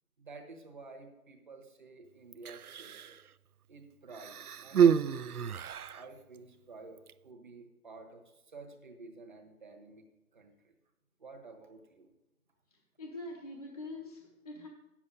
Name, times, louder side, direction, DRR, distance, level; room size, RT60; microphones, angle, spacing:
voice 1, 0.2-3.2 3.7-4.3 4.6-5.4 5.8-10.0 10.3-10.7 11.2-12.1, right 3 dB, 30° right, 3 dB, 1.3 m, -51 dB
Human voice, 2.3-3.2 4.1-6.1 7.0-7.1, right 8 dB, 75° right, 0.5 m, -29 dB
voice 2, 12.7-14.7, left 2 dB, 25° left, -2 dB, 0.7 m, -44 dB
8.2 x 7.3 x 8.5 m, 0.95 s
figure-of-eight pair, 155°, 45 cm